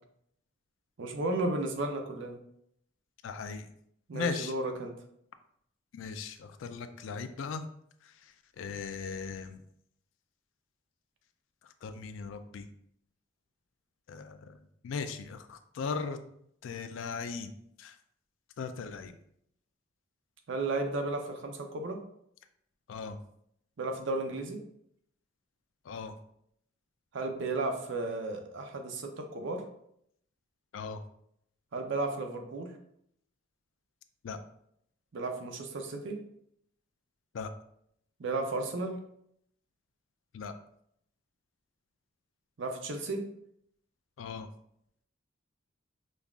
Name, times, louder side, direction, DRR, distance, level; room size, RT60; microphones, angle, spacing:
voice 1, 1.0-2.4 4.1-4.9 20.5-22.0 23.8-24.6 27.1-29.6 31.7-32.7 35.1-36.2 38.2-39.0 42.6-43.3, right 2 dB, 65° right, 4 dB, 0.5 m, -34 dB
voice 2, 3.2-3.7 4.1-4.5 5.9-7.6 8.6-9.6 11.8-12.7 14.1-16.2 16.6-17.5 17.8-17.9 18.6-19.1 22.9-23.2 25.9-26.1 30.7-31.0 34.2-34.4 37.3-37.5 40.3-40.5 44.2-44.5, left 5 dB, 70° left, 9 dB, 0.3 m, -38 dB
5.2 x 2.3 x 2.3 m, 0.72 s
head